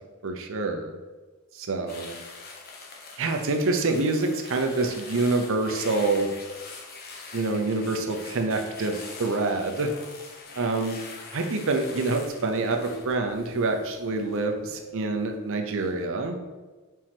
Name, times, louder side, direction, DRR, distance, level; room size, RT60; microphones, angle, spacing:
voice 1, 0.2-1.0 1.5-2.1 3.2-6.3 7.3-9.9 10.6-10.9 11.3-16.4, right 3 dB, 60° right, 5 dB, 0.7 m, -26 dB
sound 1, 1.9-15.2 15.6-15.9, left 3 dB, 45° left, 1.0 m, -44 dB
4.7 x 4.4 x 5.8 m, 1.3 s
head